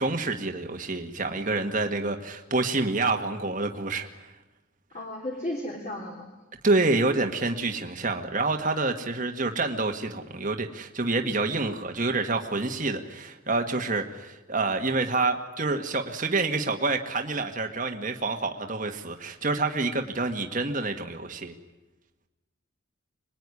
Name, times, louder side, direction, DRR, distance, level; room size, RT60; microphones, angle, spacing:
voice 1, 0.0-4.3 6.6-21.5, right 3 dB, 40° right, 4 dB, 1.6 m, -27 dB
voice 2, 4.9-6.3, left 1 dB, 35° left, 0 dB, 3.3 m, -34 dB
25.0 x 21.5 x 9.8 m, 1.1 s
head